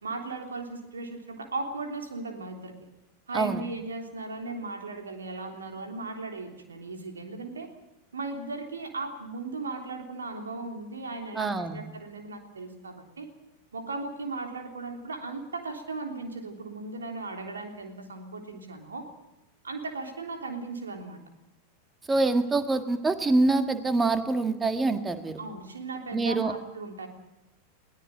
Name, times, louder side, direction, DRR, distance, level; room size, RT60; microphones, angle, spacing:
voice 1, 0.0-2.7 3.3-7.7 8.1-13.3 13.7-19.1 19.6-21.2 25.4-27.1, right 3 dB, 70° right, 4 dB, 3.4 m, -37 dB
voice 2, 11.3-11.8 22.1-25.4 26.1-26.5, right 3 dB, 15° right, 9 dB, 1.9 m, -25 dB
22.0 x 18.0 x 9.0 m, 0.92 s
figure-of-eight pair, 90°, 0 cm